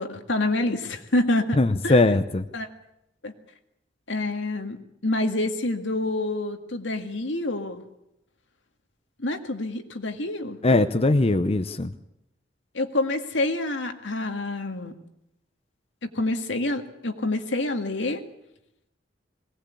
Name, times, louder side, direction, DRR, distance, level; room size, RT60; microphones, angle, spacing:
voice 1, 0.0-1.6 1.8-2.0 2.5-2.7 3.2-3.3 4.1-7.8 9.2-10.6 12.7-15.0 16.0-18.2, left 2 dB, 80° left, 6 dB, 2.0 m, -27 dB
voice 2, 1.6-2.5 10.6-11.9, left 2 dB, 35° left, 9 dB, 0.8 m, -20 dB
21.0 x 18.0 x 8.5 m, 0.85 s
head